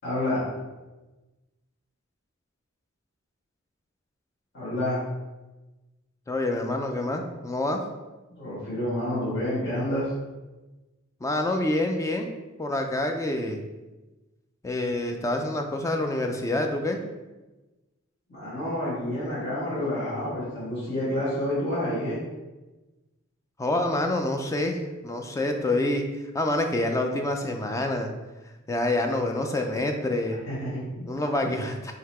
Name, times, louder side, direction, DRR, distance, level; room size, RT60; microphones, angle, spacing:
voice 1, 0.0-0.4 4.5-5.0 8.4-10.1 18.3-22.2 30.3-31.5, left 1 dB, 55° left, -10 dB, 1.4 m, -29 dB
voice 2, 6.3-7.8 11.2-12.3 12.6-13.6 14.6-17.0 23.6-26.1 26.3-28.1 28.7-30.4 31.1-31.9, left 1 dB, 15° left, 4 dB, 0.3 m, -27 dB
3.8 x 2.7 x 4.2 m, 1.1 s
head